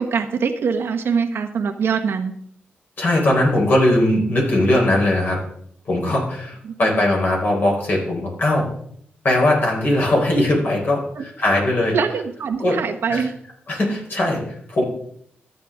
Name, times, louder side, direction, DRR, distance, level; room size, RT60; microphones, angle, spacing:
voice 1, 0.0-2.3 6.6-7.0 11.1-11.2 11.9-13.3, right 6 dB, 75° right, 5 dB, 1.1 m, -23 dB
voice 2, 3.0-5.4 5.9-8.7 9.2-12.0 12.6-12.8 13.1-13.2 13.7-14.8, left 1 dB, 55° left, -1 dB, 4.1 m, -19 dB
12.5 x 9.2 x 3.6 m, 0.67 s
wide cardioid pair, 110°, 4 cm